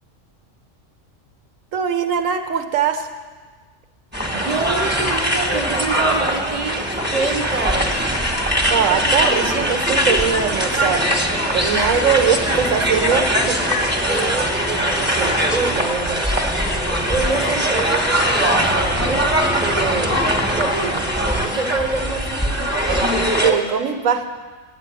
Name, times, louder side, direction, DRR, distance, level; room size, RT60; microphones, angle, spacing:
voice 1, 1.7-3.1 8.7-11.0 11.5-13.6 23.4-24.3, right 7 dB, 85° right, 8 dB, 1.3 m, -21 dB
sound 1, 4.1-23.5, equal, 10° right, 1.2 m, -21 dB
voice 2, 4.3-8.0 12.1-12.3 14.1-16.3 16.7-18.8 19.1-19.4 19.6-20.2 20.6-21.1 21.4-22.5, right 3 dB, 35° right, 6 dB, 0.9 m, -27 dB
9.7 x 8.5 x 9.1 m, 1.4 s
omnidirectional pair, 1.3 m